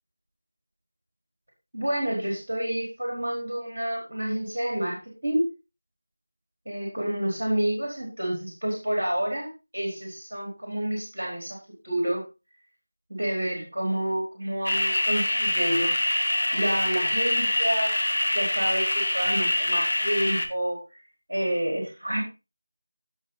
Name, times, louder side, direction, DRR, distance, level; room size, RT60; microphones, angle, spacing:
voice 1, 1.7-5.5 6.7-11.6 11.8-12.2 13.1-15.9 16.5-18.0 18.3-20.8 21.3-22.2, right 1 dB, 50° right, -1 dB, 4.4 m, -29 dB
sound 1, 14.7-20.5, left 1 dB, 60° left, 1.7 m, -25 dB
16.5 x 5.5 x 4.0 m, 0.29 s
figure-of-eight pair, 170°, 0 cm